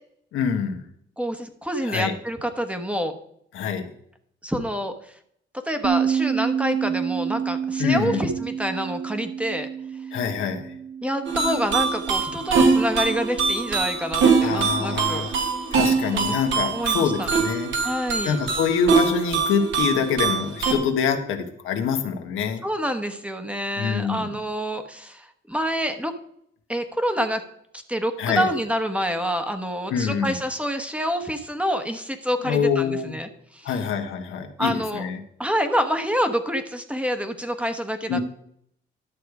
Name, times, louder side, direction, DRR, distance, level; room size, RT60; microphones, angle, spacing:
voice 1, 0.3-0.8 1.8-2.1 3.5-3.9 7.8-8.2 10.1-10.7 14.4-15.3 15.7-17.7 18.2-22.6 23.8-24.2 28.2-28.5 29.9-30.3 32.4-33.2 33.6-35.2 38.1-38.2, left 6 dB, 85° left, 5 dB, 1.4 m, -25 dB
voice 2, 1.2-3.1 4.4-5.1 5.6-9.7 11.0-15.3 16.1-16.4 16.7-17.3 17.8-18.4 22.6-26.1 26.7-27.4 27.7-33.8 34.6-35.1 35.4-38.2, equal, 5° right, 8 dB, 1.2 m, -27 dB
Bass guitar, 5.8-12.1, right 7 dB, 50° right, 0.8 m, -28 dB
sound 1, 11.3-20.7, right 5 dB, 70° right, 2.0 m, -23 dB
11.5 x 6.6 x 4.8 m, 0.70 s
cardioid pair, 90°, 20 cm